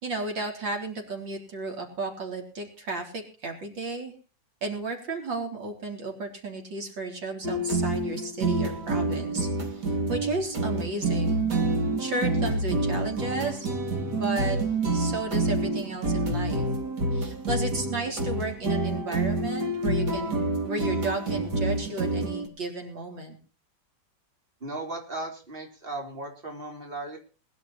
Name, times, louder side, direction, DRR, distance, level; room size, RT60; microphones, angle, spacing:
voice 1, 0.0-4.1 4.6-11.6 12.0-13.7 14.1-16.7 17.1-23.4, right 2 dB, 90° right, 2 dB, 4.5 m, -33 dB
sound 1, 7.4-22.5, right 2 dB, 65° right, 3.1 m, -27 dB
voice 2, 24.6-27.2, right 2 dB, 30° right, 1 dB, 4.0 m, -36 dB
21.0 x 11.0 x 4.3 m, 0.36 s
omnidirectional pair, 2.0 m